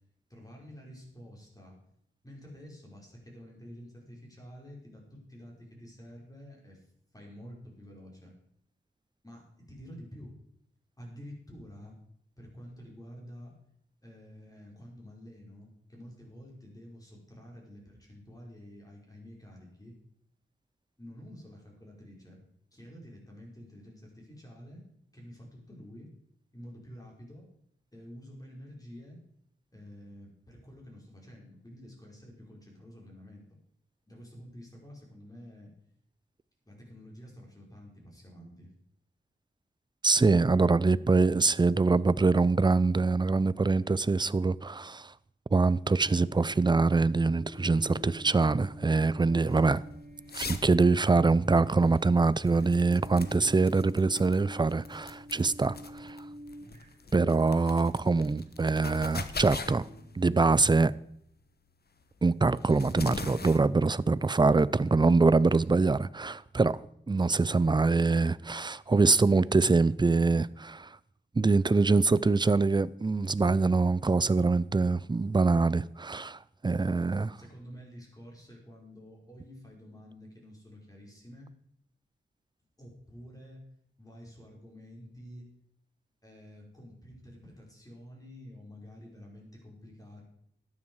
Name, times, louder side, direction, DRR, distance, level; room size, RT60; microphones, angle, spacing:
voice 1, 0.3-1.8 2.2-6.9 7.1-8.3 9.2-10.3 11.0-12.0 12.4-13.5 14.0-19.9 21.0-22.4 22.7-24.8 25.1-26.1 26.5-27.5 27.9-29.2 29.7-33.4 34.1-35.7 36.7-38.7 77.4-81.5 82.8-83.6 84.0-85.4 86.2-90.2, equal, 20° left, 5.0 m, -49 dB
voice 2, 40.0-45.1 45.5-49.8 50.3-56.2 57.1-59.9 60.2-60.9 62.2-66.8 67.1-71.0 71.4-77.4, right 3 dB, 25° right, 0.4 m, -24 dB
sound 1, 45.9-61.1, equal, 45° right, 2.1 m, -49 dB
sound 2, 47.6-65.9, left 4 dB, 55° left, 1.1 m, -44 dB
13.0 x 9.7 x 4.7 m
wide cardioid pair, 65°, 20 cm